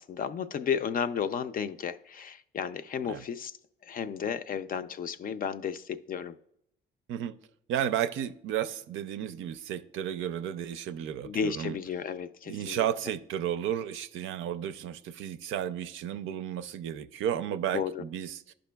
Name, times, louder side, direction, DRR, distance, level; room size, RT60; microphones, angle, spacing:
voice 1, 0.0-3.5 3.9-6.3 11.2-12.9 17.7-18.0, left 7 dB, 45° left, 0.4 m, -33 dB
voice 2, 7.7-11.8 12.5-18.5, right 10 dB, 80° right, 0.5 m, -33 dB
11.5 x 5.1 x 2.2 m
cardioid pair, 90°, 20 cm